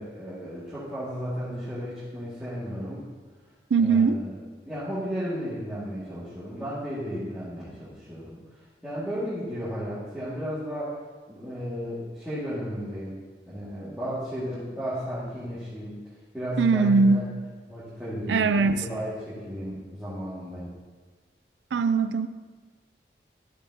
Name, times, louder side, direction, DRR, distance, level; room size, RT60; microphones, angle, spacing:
voice 1, 0.0-3.0 3.8-4.3 4.7-8.4 8.8-11.0 11.3-13.2 13.5-16.0 16.3-17.3 17.7-20.7, equal, 5° right, -13 dB, 2.0 m, -34 dB
voice 2, 3.7-4.2 16.6-17.3 18.3-18.9 21.7-22.3, right 4 dB, 90° right, 11 dB, 0.4 m, -21 dB
12.5 x 6.8 x 2.9 m, 1.4 s
head